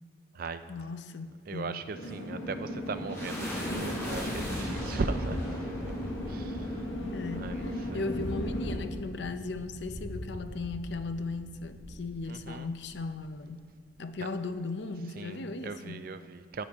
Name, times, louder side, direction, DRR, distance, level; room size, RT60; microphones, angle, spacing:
voice 1, 0.7-1.8 7.0-13.6 14.0-16.1, left 3 dB, 60° left, 9 dB, 0.6 m, -37 dB
voice 2, 1.5-6.8 7.4-8.1 12.3-12.7 15.2-16.6, right 4 dB, 45° right, 11 dB, 0.4 m, -38 dB
sound 1, 1.9-8.8, left 1 dB, 85° left, 1.6 m, -37 dB
sound 2, 2.6-13.0, equal, 15° left, 2.8 m, -39 dB
10.0 x 9.5 x 3.5 m, 2.1 s
head